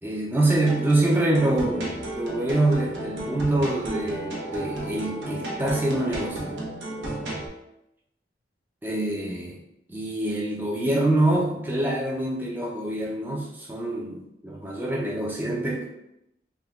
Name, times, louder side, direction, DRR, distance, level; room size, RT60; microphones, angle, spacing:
voice 1, 0.0-6.6 8.8-9.6 9.9-15.9, right 2 dB, 10° right, -2 dB, 0.4 m, -25 dB
sound 1, 0.5-7.5, right 1 dB, 80° right, 0.7 m, -33 dB
3.5 x 2.2 x 2.2 m, 0.84 s
head